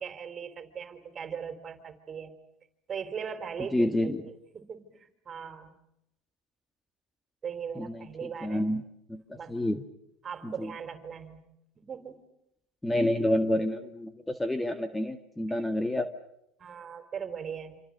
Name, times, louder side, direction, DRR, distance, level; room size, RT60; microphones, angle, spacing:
voice 1, 0.0-2.3 2.9-4.1 4.5-5.8 7.4-8.6 9.3-9.6 10.2-11.5 11.8-12.3 15.5-15.6 16.6-17.8, right 7 dB, 35° right, 8 dB, 3.9 m, -39 dB
voice 2, 3.7-4.2 7.8-8.8 9.1-9.8 10.4-10.7 12.8-16.1, left 1 dB, 10° left, 8 dB, 1.8 m, -29 dB
27.5 x 27.0 x 6.6 m, 0.80 s
supercardioid pair, 90°, 0 cm